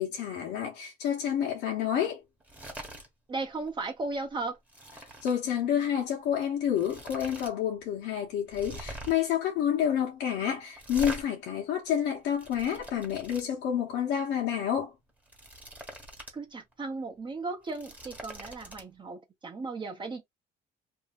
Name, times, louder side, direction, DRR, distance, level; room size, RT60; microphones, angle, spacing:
voice 1, 0.0-2.2 5.2-14.9, left 9 dB, 85° left, 0.9 m, -29 dB
sound 1, 2.4-3.1 3.4-3.7 4.0-5.4 6.3-6.4 6.7-7.5 7.8-7.9 8.5-9.3 10.8-11.2 12.0-13.4 15.1-16.4 16.7-16.8 17.5-18.8, right 1 dB, 10° right, 1.0 m, -43 dB
voice 2, 3.3-4.6 16.3-20.2, right 3 dB, 30° right, 0.7 m, -36 dB
2.7 x 2.2 x 3.5 m
cardioid pair, 110°, 17 cm